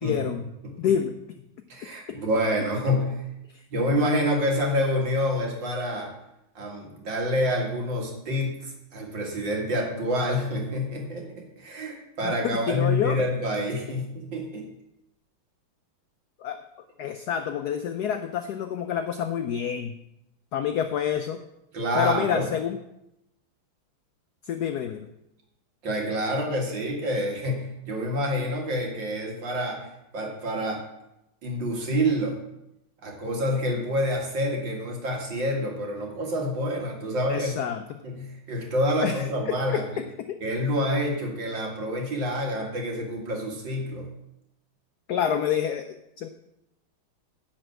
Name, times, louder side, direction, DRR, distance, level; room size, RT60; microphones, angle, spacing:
voice 1, 0.0-0.5 0.8-1.2 2.1-2.2 3.5-3.6 12.2-13.2 16.4-16.6 17.0-20.0 20.5-21.4 21.9-22.8 24.4-25.1 37.3-37.8 39.0-40.4 45.1-46.3, left 8 dB, 85° left, 8 dB, 0.8 m, -28 dB
voice 2, 1.7-3.2 3.7-6.1 6.6-14.7 21.7-22.5 25.8-29.8 30.1-30.8 31.4-32.4 33.0-37.6 38.0-39.8 40.4-44.1, equal, 60° right, 0 dB, 2.6 m, -27 dB
10.5 x 4.4 x 7.9 m, 0.85 s
omnidirectional pair, 2.3 m